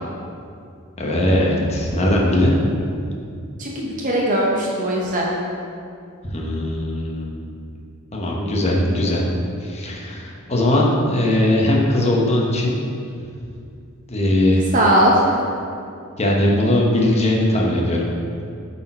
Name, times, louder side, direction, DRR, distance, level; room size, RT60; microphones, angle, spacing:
voice 1, 1.0-2.5 6.2-7.3 8.1-9.3 9.6-12.8 14.1-14.7 16.2-18.1, left 1 dB, 30° left, -2 dB, 1.0 m, -19 dB
voice 2, 3.6-5.3 14.7-15.4, right 1 dB, 40° right, -3 dB, 0.8 m, -19 dB
8.5 x 4.2 x 4.4 m, 2.4 s
head